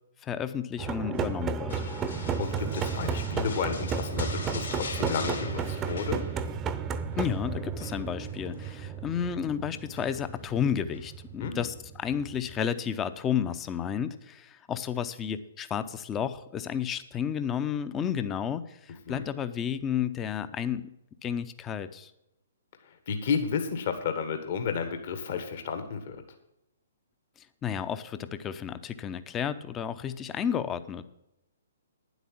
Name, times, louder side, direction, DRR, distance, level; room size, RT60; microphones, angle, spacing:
voice 1, 0.2-1.8 7.2-20.9 21.2-22.1 27.6-31.0, left 8 dB, 20° left, 12 dB, 0.7 m, -32 dB
sound 1, 0.8-12.6, right 6 dB, 20° right, 0.7 m, -33 dB
sound 2, 1.7-6.7 7.0-7.3 7.8-8.8 9.9-10.4 10.9-11.1, left 4 dB, 70° left, 2.9 m, -42 dB
voice 2, 2.1-6.2 11.4-11.6 19.1-19.2 23.1-26.2, left 6 dB, 50° left, 7 dB, 1.4 m, -32 dB
10.0 x 8.1 x 6.1 m, 0.87 s
figure-of-eight pair, 125°, 0 cm